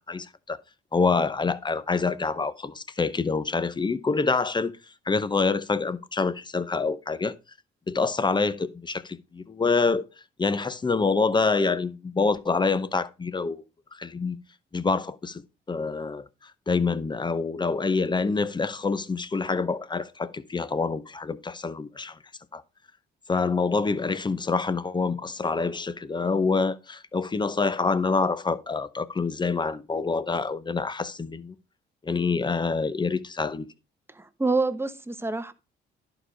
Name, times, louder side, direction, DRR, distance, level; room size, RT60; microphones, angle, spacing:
voice 1, 0.1-0.6 0.9-4.7 5.1-7.3 7.9-10.1 10.4-13.6 13.9-14.4 14.7-15.4 15.7-16.3 16.7-22.2 22.5-22.6 23.3-31.5 32.0-33.7, left 4 dB, 20° left, 0.8 m, -26 dB
voice 2, 34.2-35.5, right 3 dB, 10° right, 1.0 m, -27 dB
11.0 x 4.9 x 5.0 m
cardioid pair, 90°, 20 cm